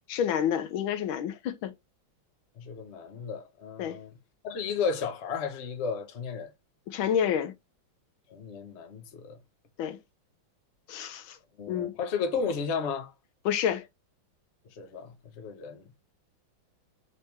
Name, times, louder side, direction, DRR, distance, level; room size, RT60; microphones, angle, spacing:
voice 1, 0.1-1.7 3.8-4.0 6.9-7.5 9.8-10.0 10.9-11.4 11.7-11.9 13.4-13.9, left 9 dB, 75° left, 1.4 m, -29 dB
voice 2, 2.6-4.1 4.4-6.5 8.3-9.4 11.6-13.1 14.8-15.8, left 5 dB, 50° left, 0.8 m, -33 dB
4.3 x 3.5 x 2.9 m
omnidirectional pair, 2.2 m